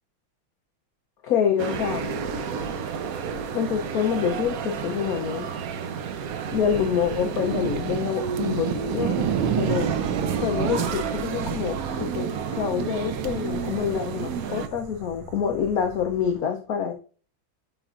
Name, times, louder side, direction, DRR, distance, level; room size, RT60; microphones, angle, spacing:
voice 1, 1.2-2.1 3.5-5.5 6.5-9.3 9.6-9.9 10.4-16.9, left 8 dB, 65° left, 0.9 m, -26 dB
sound 1, 1.6-14.7, right 6 dB, 70° right, 0.9 m, -31 dB
sound 2, 6.0-16.4, right 8 dB, 85° right, 1.5 m, -31 dB
9.9 x 5.2 x 2.5 m
omnidirectional pair, 2.2 m